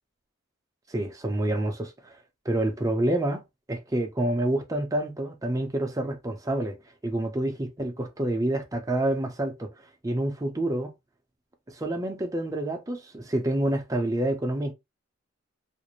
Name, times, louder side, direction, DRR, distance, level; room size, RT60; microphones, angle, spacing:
voice 1, 0.9-2.2 2.4-6.8 7.0-9.7 10.0-10.9 11.7-14.7, right 1 dB, 15° right, 0.5 m, -28 dB
2.5 x 2.0 x 3.0 m
head